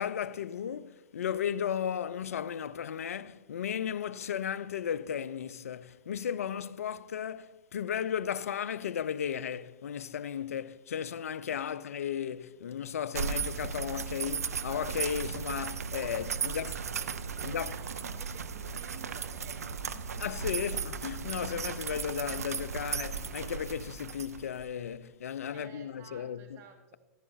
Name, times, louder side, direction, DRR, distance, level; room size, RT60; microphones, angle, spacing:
voice 1, 0.0-16.7 17.4-17.7 20.2-26.6, left 8 dB, 65° left, 0.4 m, -35 dB
sound 1, 13.1-24.6, right 6 dB, 70° right, 0.6 m, -36 dB
voice 2, 16.3-20.8 25.5-27.0, right 6 dB, 30° right, 1.1 m, -53 dB
sound 2, 17.1-24.9, right 2 dB, 10° right, 1.7 m, -58 dB
14.5 x 11.0 x 2.5 m
figure-of-eight pair, 100°, 8 cm